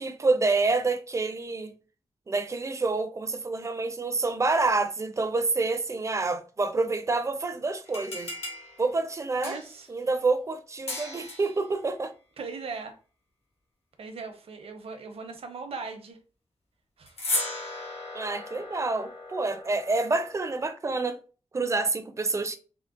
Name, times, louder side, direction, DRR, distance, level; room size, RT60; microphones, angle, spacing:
voice 1, 0.0-1.7 2.3-8.3 8.8-9.6 9.9-12.1 18.1-21.2 21.5-22.6, right 3 dB, 30° right, 0.4 m, -27 dB
sound 1, 7.8-9.9 10.9-11.6 17.1-20.6, left 2 dB, 75° left, 1.1 m, -36 dB
voice 2, 9.4-9.9 12.4-12.9 14.0-16.2 17.0-17.2, right 4 dB, 70° right, 0.7 m, -39 dB
3.7 x 2.1 x 2.4 m
wide cardioid pair, 110°, 10 cm